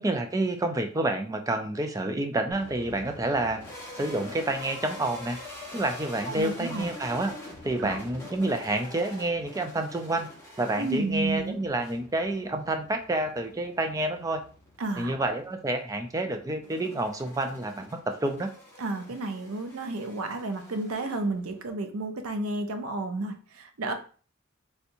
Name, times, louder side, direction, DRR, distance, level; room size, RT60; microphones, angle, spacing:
voice 1, 0.0-3.6 4.0-5.4 5.7-7.3 7.6-10.3 10.6-14.4 15.0-18.5, right 2 dB, 15° right, 6 dB, 0.3 m, -29 dB
sound 1, 2.5-21.7, left 2 dB, 10° left, 1.0 m, -46 dB
voice 2, 6.3-6.9 7.8-8.0 10.8-11.6 14.8-15.1 18.8-23.9, right 2 dB, 85° right, 7 dB, 0.5 m, -31 dB
3.4 x 2.8 x 2.6 m, 0.40 s
head